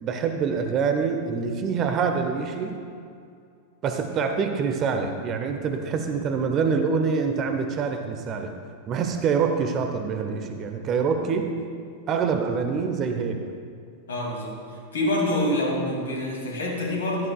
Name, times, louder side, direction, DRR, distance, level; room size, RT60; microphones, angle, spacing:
voice 1, 0.0-2.8 3.8-8.5 8.9-11.5 12.1-13.4, right 5 dB, 30° right, 5 dB, 0.9 m, -25 dB
voice 2, 14.1-14.5 14.9-17.3, left 1 dB, 65° left, -1 dB, 2.6 m, -26 dB
15.0 x 12.5 x 2.4 m, 2.4 s
figure-of-eight pair, 90°, 0 cm